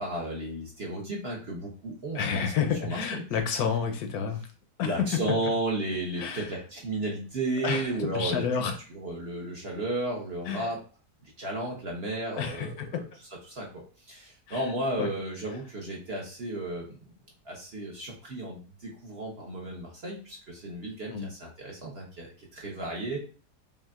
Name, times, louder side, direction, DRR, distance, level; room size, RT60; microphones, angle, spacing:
voice 1, 0.0-2.5 2.8-3.2 4.8-8.4 8.9-10.8 11.4-13.0 13.4-13.8 14.1-17.0 17.4-23.2, right 2 dB, 50° right, -2 dB, 0.9 m, -33 dB
voice 2, 2.1-4.4 4.8-5.1 6.2-6.5 7.6-8.8 10.5-10.7 12.4-12.9 14.5-14.6 15.0-15.1 21.1-21.3, left 7 dB, 70° left, 5 dB, 1.0 m, -30 dB
5.3 x 2.6 x 2.4 m, 0.38 s
omnidirectional pair, 1.8 m